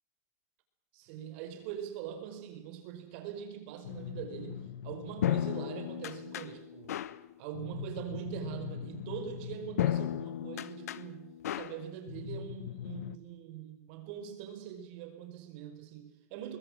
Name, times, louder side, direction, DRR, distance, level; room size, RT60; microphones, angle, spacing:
voice 1, 0.9-7.0 7.4-16.6, right 10 dB, 45° right, 7 dB, 5.0 m, -43 dB
sound 1, 3.8-13.2, left 11 dB, 80° left, 1.2 m, -36 dB
24.5 x 22.5 x 7.5 m, 0.83 s
supercardioid pair, 155°, 8 cm